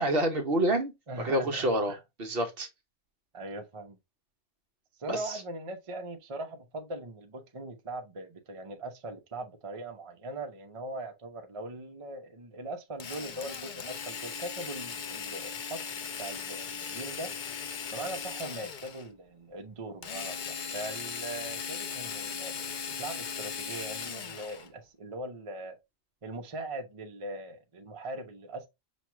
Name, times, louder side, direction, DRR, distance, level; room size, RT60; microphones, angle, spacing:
voice 1, 0.0-0.9 1.2-2.7 5.1-5.4, right 1 dB, 50° right, 1.0 m, -28 dB
voice 2, 1.1-2.0 3.3-4.0 5.0-15.8 16.2-17.3 17.9-22.5 23.0-25.8 26.2-28.7, right 2 dB, 30° right, 0.6 m, -40 dB
Drill, 13.0-19.1 20.0-24.7, left 6 dB, 50° left, 0.6 m, -38 dB
6.2 x 2.3 x 2.9 m
omnidirectional pair, 1.3 m